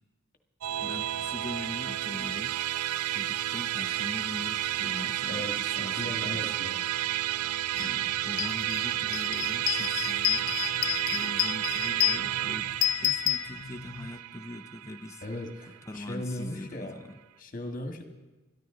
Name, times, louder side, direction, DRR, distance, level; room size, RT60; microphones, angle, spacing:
Musical instrument, 0.6-16.1, right 13 dB, 85° right, 0.4 m, -31 dB
voice 1, 0.8-6.5 7.7-10.7 11.1-12.7 13.0-15.2 15.6-17.2, left 1 dB, 15° left, 4 dB, 0.7 m, -42 dB
voice 2, 5.3-6.8 15.2-17.0 17.4-18.0, left 1 dB, 40° left, 5 dB, 1.8 m, -37 dB
sound 1, 7.8-7.9 8.2-14.1, left 14 dB, 60° left, 0.4 m, -30 dB
22.0 x 14.0 x 3.9 m, 1.2 s
head